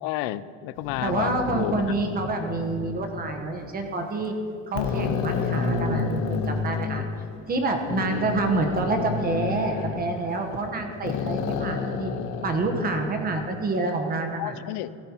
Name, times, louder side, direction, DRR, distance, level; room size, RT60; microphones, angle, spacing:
voice 1, 0.0-1.8 8.0-8.3 14.3-14.9, left 15 dB, 75° left, 15 dB, 0.5 m, -31 dB
sound 1, 0.8-3.7 4.2-4.3 4.7-7.1 7.9-10.7 11.0-13.4, left 5 dB, 60° left, 1.2 m, -30 dB
voice 2, 1.0-4.3 4.7-7.0 7.4-12.1 12.4-14.6, right 3 dB, 25° right, 5 dB, 1.2 m, -27 dB
15.5 x 15.0 x 3.0 m, 2.5 s
cardioid pair, 165°, 35 cm